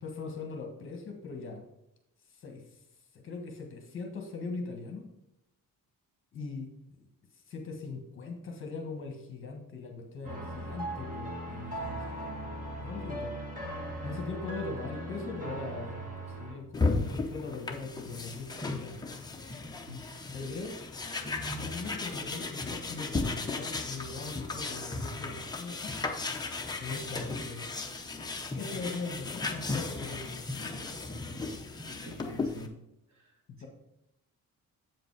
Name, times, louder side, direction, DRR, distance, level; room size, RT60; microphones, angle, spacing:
voice 1, 0.0-1.6 2.3-2.8 3.1-5.1 6.3-7.1 7.5-12.4 12.8-13.3 14.0-19.0 20.3-20.7 21.5-26.0 26.8-27.6 28.5-30.4 33.5-33.7, left 3 dB, 40° left, 3 dB, 1.4 m, -40 dB
sound 1, 10.2-16.6, right 1 dB, 25° right, 1.8 m, -39 dB
sound 2, 16.7-32.7, left 3 dB, 10° left, 0.6 m, -35 dB
voice 2, 32.1-32.7 33.2-33.3, left 1 dB, 55° right, -1 dB, 2.4 m, -44 dB
8.0 x 5.1 x 4.7 m, 0.87 s
cardioid pair, 170°, 33 cm